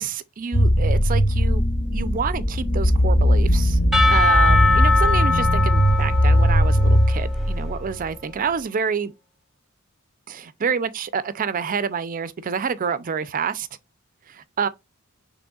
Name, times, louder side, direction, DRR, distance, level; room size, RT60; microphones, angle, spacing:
voice 1, 0.0-1.6 1.9-3.8 4.1-9.1 10.3-13.7 14.3-14.7, right 6 dB, 40° right, 0.4 m, -28 dB
sound 1, 0.5-8.0, equal, 40° left, 0.7 m, -19 dB
Percussion / Church bell, 3.9-7.9, left 3 dB, ahead, 0.9 m, -22 dB
6.2 x 3.3 x 2.3 m
head